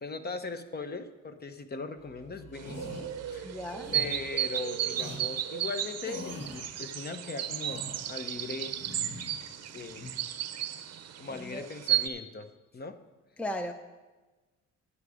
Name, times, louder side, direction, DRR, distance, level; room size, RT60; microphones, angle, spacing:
voice 1, 0.0-3.5 3.9-8.8 9.7-10.0 11.2-12.5 12.7-13.0, left 3 dB, 30° left, 0.8 m, -39 dB
sound 1, 2.0-4.8, right 4 dB, 80° left, 2.7 m, -54 dB
sound 2, 2.5-12.1, right 11 dB, 55° right, 0.7 m, -34 dB
sound 3, 2.6-3.0 3.8-4.2 4.9-5.2 6.0-6.7 7.4-8.1 8.7-9.4 9.7-10.1, left 1 dB, 55° left, 2.4 m, -43 dB
voice 2, 3.4-4.0 11.3-11.6 13.4-13.7, equal, 5° left, 0.5 m, -36 dB
9.7 x 9.7 x 4.9 m
cardioid pair, 90°, 30 cm